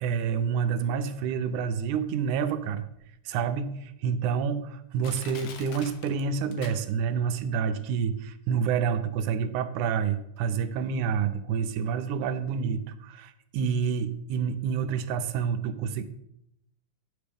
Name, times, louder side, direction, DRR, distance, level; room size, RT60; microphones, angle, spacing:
voice 1, 0.0-2.9 3.3-16.0, right 6 dB, 85° right, 10 dB, 2.1 m, -28 dB
Crushing, 2.9-3.0 3.7-3.8 4.4-4.5 5.0-7.2 7.5-7.6, left 6 dB, 85° left, 2.3 m, -45 dB
9.5 x 7.1 x 3.4 m, 0.80 s
omnidirectional pair, 3.5 m